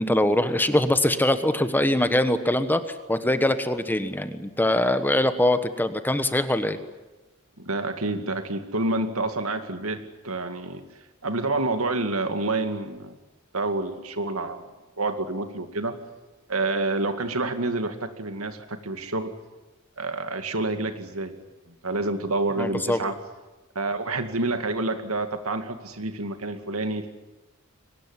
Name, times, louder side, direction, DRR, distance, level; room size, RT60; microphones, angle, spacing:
voice 1, 0.0-2.8 3.1-6.8 22.6-23.0, left 1 dB, 10° left, 10 dB, 1.3 m, -23 dB
voice 2, 7.6-10.8 11.2-13.2 13.5-14.6 15.0-16.0 16.5-19.3 20.0-21.3 21.7-23.2 23.7-27.1, right 2 dB, 90° right, 8 dB, 2.3 m, -28 dB
23.0 x 19.5 x 9.8 m, 1.1 s
head